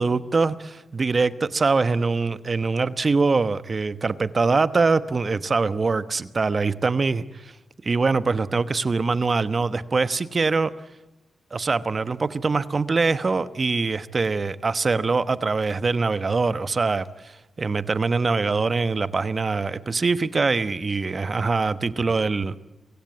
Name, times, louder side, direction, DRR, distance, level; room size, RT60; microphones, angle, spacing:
voice 1, 0.0-7.5 7.8-10.7 11.5-22.6, right 4 dB, 45° right, 14 dB, 1.1 m, -23 dB
23.5 x 16.5 x 9.6 m, 1.1 s
supercardioid pair, 50°, 0 cm